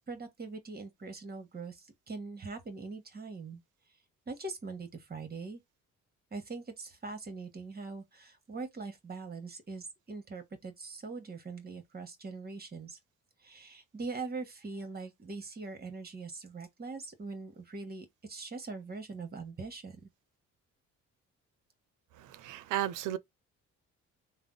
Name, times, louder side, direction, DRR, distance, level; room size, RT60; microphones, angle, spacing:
voice 1, 0.1-3.6 4.3-5.6 6.3-13.0 13.4-20.1, right 3 dB, 30° right, 1.2 m, -42 dB
voice 2, 22.2-23.2, right 13 dB, 85° right, 0.5 m, -34 dB
3.4 x 2.1 x 3.8 m
cardioid pair, 90°, 30 cm